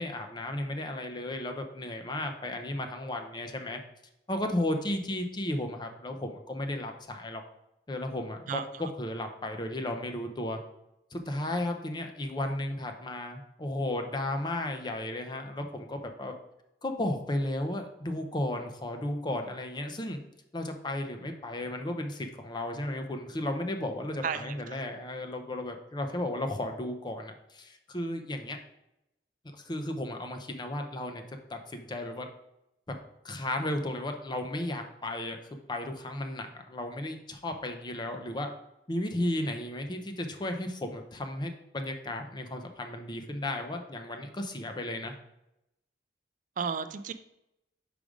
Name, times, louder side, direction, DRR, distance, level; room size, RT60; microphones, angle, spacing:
voice 1, 0.0-3.8 4.3-7.4 7.9-10.6 11.1-16.3 16.8-20.2 20.5-28.6 29.5-32.3 32.9-33.0 33.2-35.4 35.7-38.5 38.9-45.1, left 1 dB, 25° left, 5 dB, 0.6 m, -34 dB
voice 2, 8.5-8.8 24.2-24.8 46.6-47.1, right 6 dB, 45° right, 11 dB, 0.3 m, -34 dB
5.1 x 5.0 x 5.0 m, 0.86 s
head